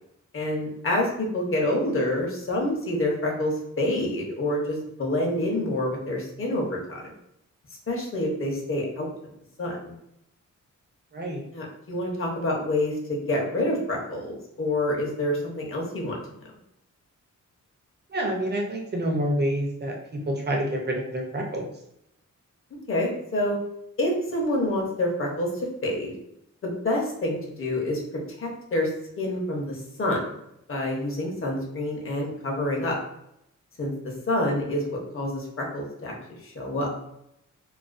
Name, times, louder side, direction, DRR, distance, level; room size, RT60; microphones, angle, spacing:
voice 1, 0.3-7.1 7.9-9.1 9.6-9.9 11.5-16.2 22.9-23.6 24.0-25.5 25.8-26.1 26.6-28.9 29.2-30.3 30.7-33.0 33.8-36.1 36.4-36.9, left 1 dB, 45° left, -1 dB, 0.6 m, -27 dB
voice 2, 11.1-11.4 18.1-21.7, right 1 dB, 35° right, 0 dB, 0.5 m, -28 dB
2.3 x 2.2 x 2.4 m, 0.79 s
wide cardioid pair, 140°, 31 cm